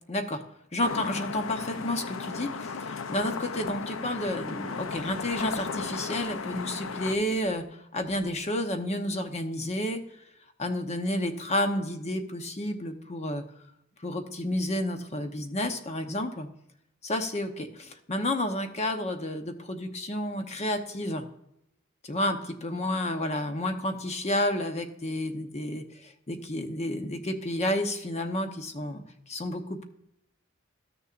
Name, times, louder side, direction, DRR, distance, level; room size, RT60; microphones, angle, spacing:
voice 1, 0.1-0.4 0.7-7.6 7.9-10.0 10.6-13.4 14.0-16.5 17.0-21.2 22.0-29.0 29.3-29.8, left 1 dB, 35° left, 6 dB, 0.9 m, -30 dB
sound 1, 0.8-7.2, left 5 dB, 85° left, 0.6 m, -35 dB
13.0 x 6.7 x 2.5 m, 0.80 s
head